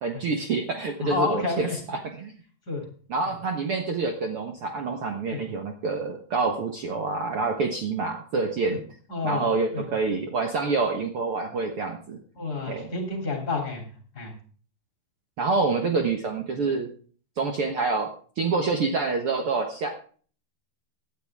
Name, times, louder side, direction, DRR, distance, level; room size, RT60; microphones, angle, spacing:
voice 1, 0.0-2.3 3.1-8.8 9.2-12.2 12.7-12.9 15.4-16.9 17.4-18.1 18.4-19.9, right 4 dB, 85° right, 3 dB, 1.2 m, -27 dB
voice 2, 1.0-1.8 2.7-2.8 5.3-5.4 8.7-8.8 9.1-9.9 12.4-13.8 14.1-14.3, left 3 dB, 25° left, 2 dB, 3.2 m, -30 dB
17.0 x 11.0 x 3.6 m, 0.43 s
omnidirectional pair, 4.7 m